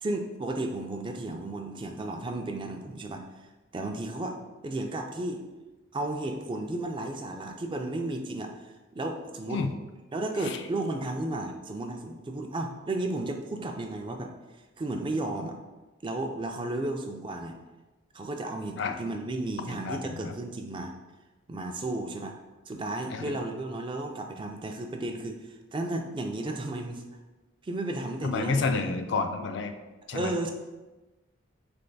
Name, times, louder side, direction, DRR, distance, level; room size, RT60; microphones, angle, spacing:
voice 1, 0.0-3.5 3.7-4.4 4.6-5.4 5.9-9.6 10.1-14.3 14.8-15.6 16.0-17.6 18.1-20.9 21.5-22.4 22.7-27.0 27.6-28.9 30.1-30.5, right 2 dB, 25° right, 4 dB, 0.3 m, -33 dB
voice 2, 19.7-20.3 23.1-23.4 28.2-29.7 30.1-30.3, left 4 dB, 60° left, 6 dB, 0.4 m, -30 dB
3.8 x 3.3 x 3.9 m, 1.1 s
head